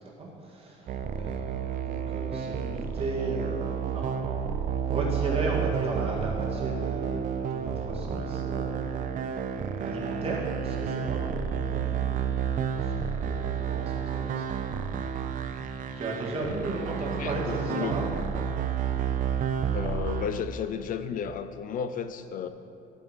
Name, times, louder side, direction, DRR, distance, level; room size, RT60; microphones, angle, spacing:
voice 1, 0.2-4.4 4.9-9.1 9.8-12.2 12.7-14.8 15.4-15.6 15.9-18.1, right 2 dB, 35° right, -3 dB, 2.0 m, -35 dB
sound 1, 0.9-20.3, right 8 dB, 55° right, 0.5 m, -31 dB
voice 2, 17.2-18.1 19.7-22.5, left 8 dB, 55° left, 10 dB, 0.4 m, -33 dB
11.5 x 5.2 x 5.1 m, 2.6 s
cardioid pair, 110°, 17 cm